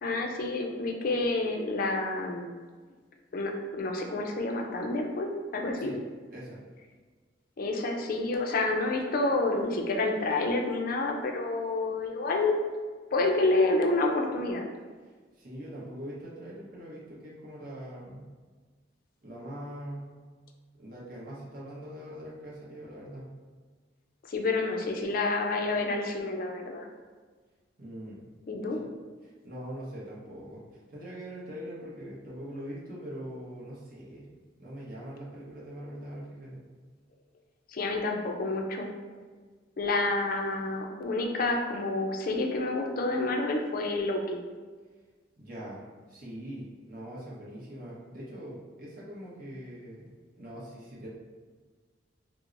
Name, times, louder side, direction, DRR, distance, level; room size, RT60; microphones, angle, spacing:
voice 1, 0.0-2.5 3.3-5.9 7.6-12.6 13.1-14.6 24.2-26.9 28.5-28.8 37.7-38.9 39.8-44.4, left 2 dB, 50° left, 2 dB, 0.4 m, -29 dB
voice 2, 15.3-18.3 19.2-20.1 20.8-23.3 27.8-28.2 29.2-30.6 30.9-34.3 34.6-36.6 45.4-45.8 46.1-50.1 50.4-51.1, equal, 50° right, -6 dB, 0.9 m, -42 dB
4.5 x 2.0 x 2.5 m, 1.4 s
head